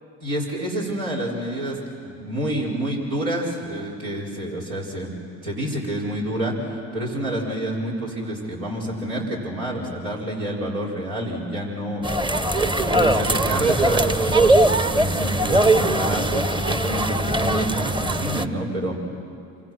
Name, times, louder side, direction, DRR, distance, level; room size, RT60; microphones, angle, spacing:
voice 1, 0.2-5.1 5.4-19.0, right 1 dB, 85° right, -4 dB, 5.8 m, -28 dB
sound 1, 12.0-18.5, right 2 dB, 15° right, 1.0 m, -21 dB
27.5 x 25.0 x 6.3 m, 2.5 s
supercardioid pair, 70°, 33 cm